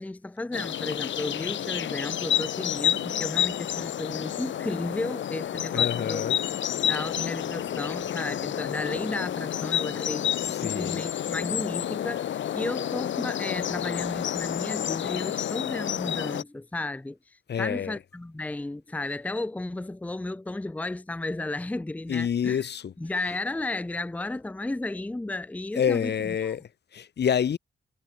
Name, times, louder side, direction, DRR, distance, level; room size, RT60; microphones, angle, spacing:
voice 1, 0.0-6.2 6.9-17.2 17.6-22.6 23.0-26.4, left 2 dB, 10° left, 0.6 m, -33 dB
sound 1, 0.5-16.4, left 10 dB, 90° left, 0.8 m, -29 dB
voice 2, 5.7-6.4 10.4-11.0 17.5-18.0 22.1-22.9 25.7-27.6, left 8 dB, 65° left, 1.4 m, -28 dB
wide cardioid pair, 130°, 19 cm